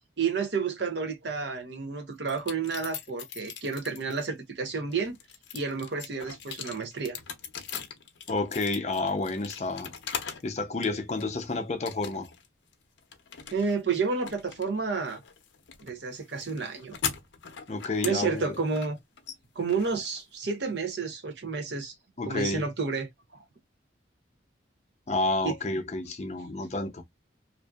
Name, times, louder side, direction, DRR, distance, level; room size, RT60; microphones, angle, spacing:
voice 1, 0.2-5.2 5.5-7.2 13.5-15.2 15.8-17.0 17.8-19.0 19.6-21.9 22.2-23.1 25.4-25.5, right 5 dB, 65° right, 0.7 m, -30 dB
sound 1, 2.3-4.3 4.8-10.5 10.8-11.4 11.9-12.5 12.7-20.7, left 7 dB, 80° left, 0.6 m, -40 dB
voice 2, 8.3-9.9 10.4-12.3 17.7-18.6 22.2-22.7 25.1-27.0, left 2 dB, 35° left, 0.5 m, -30 dB
2.6 x 2.5 x 2.3 m
head